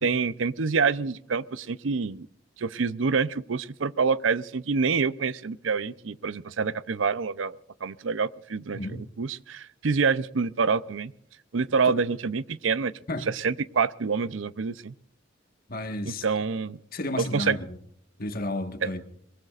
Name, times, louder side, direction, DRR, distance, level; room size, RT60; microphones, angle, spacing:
voice 1, 0.0-2.3 2.6-8.8 9.2-11.1 11.5-12.9 13.3-14.9 16.1-16.8 17.2-17.6 18.8-18.9, right 5 dB, 80° right, 0.6 m, -27 dB
voice 2, 8.7-9.1 11.9-12.0 13.1-13.4 15.7-16.2 16.9-17.8 18.2-19.1, left 1 dB, 50° left, 1.6 m, -32 dB
22.5 x 22.5 x 2.5 m
head